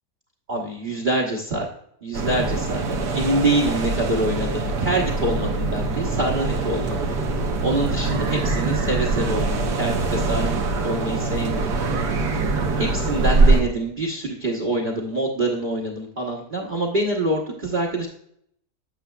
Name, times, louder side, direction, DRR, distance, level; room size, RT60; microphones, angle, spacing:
voice 1, 0.5-1.7 2.0-7.1 7.6-11.7 12.5-18.1, right 1 dB, 35° right, -3 dB, 1.1 m, -25 dB
sound 1, 2.1-13.6, right 3 dB, 90° right, 1.6 m, -23 dB
9.3 x 7.0 x 2.3 m, 0.68 s
omnidirectional pair, 1.7 m